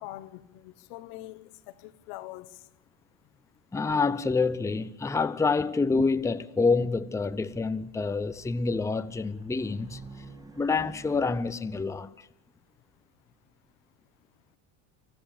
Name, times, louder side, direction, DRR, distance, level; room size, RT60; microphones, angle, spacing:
voice 1, 0.0-2.6, left 16 dB, 80° left, 1.5 m, -43 dB
voice 2, 3.7-10.0 10.6-12.1, left 4 dB, 10° left, 0.7 m, -27 dB
Race car auto racing, 7.5-11.8, right 3 dB, 10° right, 2.1 m, -50 dB
27.0 x 14.0 x 8.6 m
supercardioid pair, 115°, 37 cm